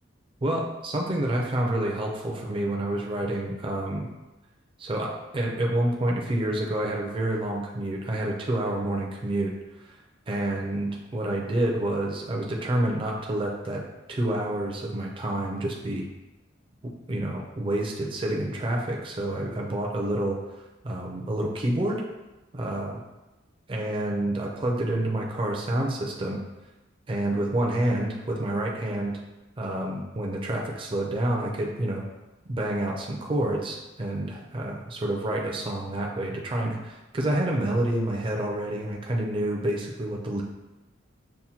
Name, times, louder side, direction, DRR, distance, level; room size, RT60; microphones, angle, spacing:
voice 1, 0.4-4.1 4.8-9.5 10.3-13.8 14.1-16.1 17.1-20.4 20.8-22.0 22.5-23.0 23.7-26.4 27.1-29.2 29.6-32.0 32.5-40.4, right 1 dB, 25° right, -1 dB, 0.4 m, -28 dB
5.6 x 2.2 x 2.8 m, 1.1 s
head